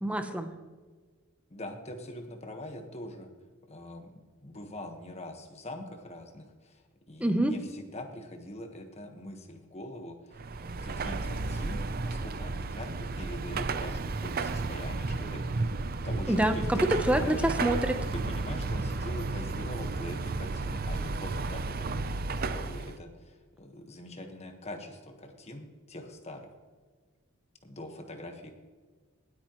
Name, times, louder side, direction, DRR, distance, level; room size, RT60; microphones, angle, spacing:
voice 1, 0.0-0.5 7.2-7.5 16.3-18.1, right 1 dB, 5° right, 7 dB, 0.8 m, -26 dB
voice 2, 1.5-3.3 3.7-4.1 4.4-10.4 10.8-17.4 18.1-26.6 27.6-28.5, left 1 dB, 30° left, 4 dB, 1.4 m, -43 dB
Car passing by / Traffic noise roadway noise / Engine, 10.3-23.0, right 3 dB, 45° right, 0.5 m, -33 dB
19.0 x 8.8 x 3.1 m, 1.4 s
head